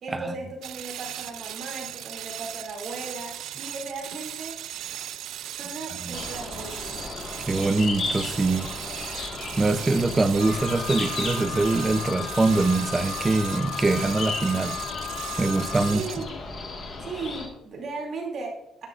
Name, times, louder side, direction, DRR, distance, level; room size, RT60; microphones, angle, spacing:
voice 1, 0.0-4.6 5.6-7.1 15.9-16.4 17.0-18.9, right 3 dB, 45° right, -1 dB, 2.5 m, -37 dB
sound 1, 0.6-16.4, right 12 dB, 70° right, 0.4 m, -37 dB
sound 2, 6.1-17.5, left 3 dB, 35° left, 1.6 m, -35 dB
voice 2, 7.5-8.7 9.6-14.8 15.4-16.0, right 3 dB, 15° right, 11 dB, 0.5 m, -23 dB
Alarm, 10.4-16.0, left 10 dB, 55° left, 0.4 m, -36 dB
11.0 x 10.5 x 2.4 m, 0.86 s
cardioid pair, 165°, 0 cm